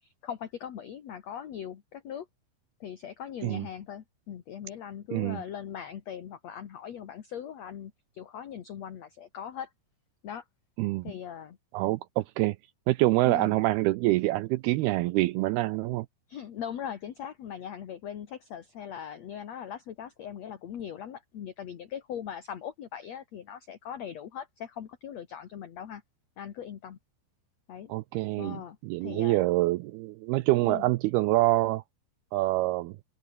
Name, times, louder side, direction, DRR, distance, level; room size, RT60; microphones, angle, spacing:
voice 1, 0.0-2.3 2.8-9.7 10.2-10.4 11.0-11.6 13.2-13.5 16.3-26.0 26.4-27.0 27.7-27.9 28.4-29.4 30.6-30.9, left 9 dB, 55° left, 2.1 m, -40 dB
voice 2, 5.1-5.4 10.8-11.1 11.7-12.6 12.9-16.1 27.9-31.8 32.3-33.0, right 18 dB, 85° right, 2.2 m, -26 dB
open air
omnidirectional pair, 5.2 m